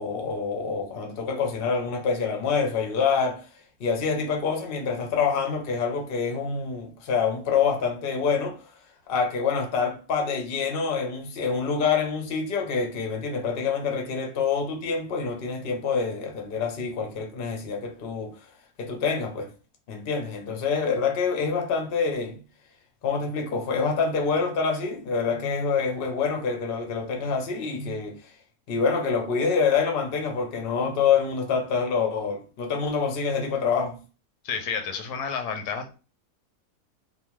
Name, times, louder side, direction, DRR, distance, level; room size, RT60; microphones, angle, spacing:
voice 1, 0.0-3.5 3.8-8.6 9.1-18.3 18.8-19.5 19.9-22.4 23.0-28.2 28.7-34.0, left 5 dB, 55° left, 0.6 m, -26 dB
voice 2, 34.4-36.0, left 6 dB, 80° left, 1.1 m, -30 dB
2.9 x 2.0 x 2.9 m
omnidirectional pair, 1.7 m